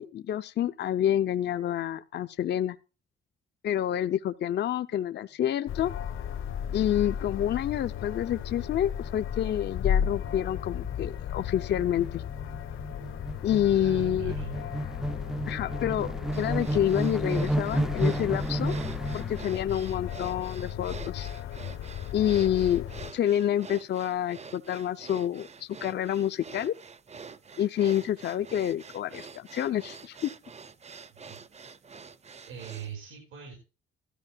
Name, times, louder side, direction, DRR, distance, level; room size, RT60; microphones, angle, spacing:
voice 1, 0.0-2.8 3.6-5.9 6.7-12.2 13.4-14.3 15.4-18.7 19.1-21.3 22.1-22.8 23.1-26.7 27.6-30.3, left 10 dB, 60° left, 0.7 m, -28 dB
sound 1, 5.7-23.1, left 9 dB, 80° left, 1.2 m, -35 dB
sound 2, 8.8-9.1 9.4-9.6 9.8-19.5, right 1 dB, ahead, 0.5 m, -32 dB
voice 2, 13.7-14.6 31.3-31.4 32.5-33.6, right 8 dB, 85° right, 5.5 m, -40 dB
sound 3, 16.3-32.9, right 5 dB, 35° right, 0.9 m, -46 dB
17.0 x 13.5 x 2.4 m
cardioid pair, 90°, 20 cm